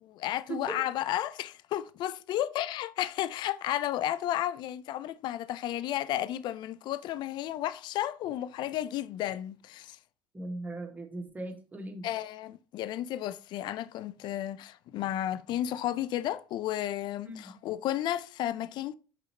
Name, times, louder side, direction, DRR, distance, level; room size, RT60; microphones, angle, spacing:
voice 1, 0.0-10.0 12.0-18.9, left 12 dB, 40° left, 0.4 m, -33 dB
voice 2, 10.3-12.1 17.2-17.5, right 2 dB, 15° right, 1.3 m, -39 dB
6.1 x 5.5 x 3.0 m
figure-of-eight pair, 60°, 11 cm